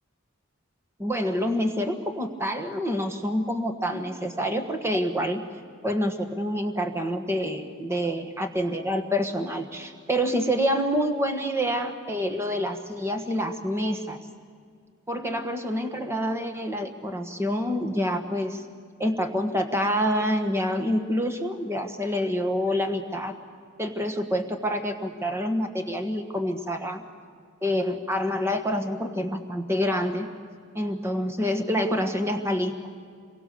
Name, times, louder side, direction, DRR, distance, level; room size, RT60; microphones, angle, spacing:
voice 1, 1.0-5.4 5.8-14.2 15.1-18.6 19.0-23.3 23.8-27.0 27.6-30.3 30.7-32.7, equal, 15° right, 6 dB, 1.4 m, -27 dB
28.5 x 23.0 x 6.9 m, 2.1 s
head